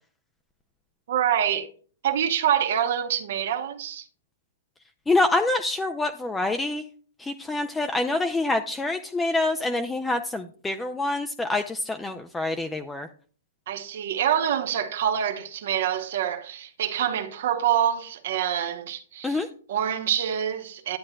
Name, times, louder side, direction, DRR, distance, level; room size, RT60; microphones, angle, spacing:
voice 1, 1.1-1.7 2.0-4.1 13.7-21.0, right 9 dB, 60° right, 0.8 m, -26 dB
voice 2, 5.1-6.8 7.2-13.1 19.2-19.5, left 2 dB, 5° left, 0.4 m, -26 dB
10.5 x 8.6 x 2.2 m
hypercardioid pair, 155°, 0 cm